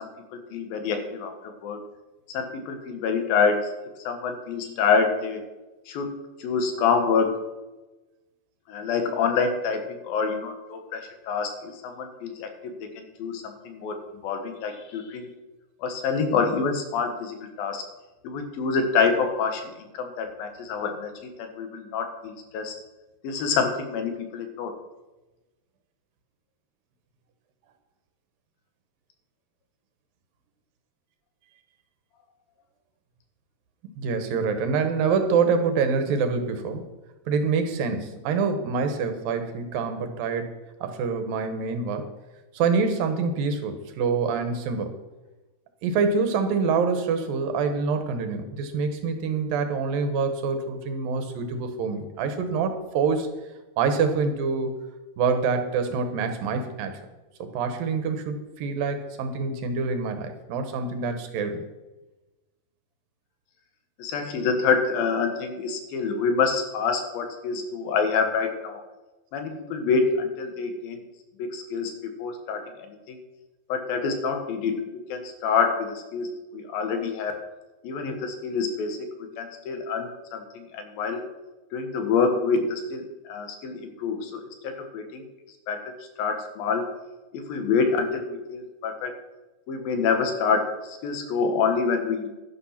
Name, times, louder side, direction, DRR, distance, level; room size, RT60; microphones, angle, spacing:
voice 1, 0.0-1.8 2.3-3.6 4.0-5.4 5.9-7.4 8.7-14.0 14.2-15.3 15.8-17.8 18.2-22.8 23.2-24.7 64.0-68.8 69.3-71.0 71.4-73.2 73.7-74.8 75.1-77.4 77.8-81.2 81.7-85.2 85.7-86.9 87.3-89.2 89.7-92.3, left 5 dB, 85° left, 5 dB, 3.2 m, -27 dB
voice 2, 34.0-36.9 37.3-40.5 40.8-42.1 42.5-44.9 45.8-53.3 53.8-54.7 55.2-57.0 57.4-61.6, right 5 dB, 80° right, 7 dB, 3.0 m, -26 dB
11.5 x 10.0 x 5.8 m, 1.1 s
omnidirectional pair, 4.0 m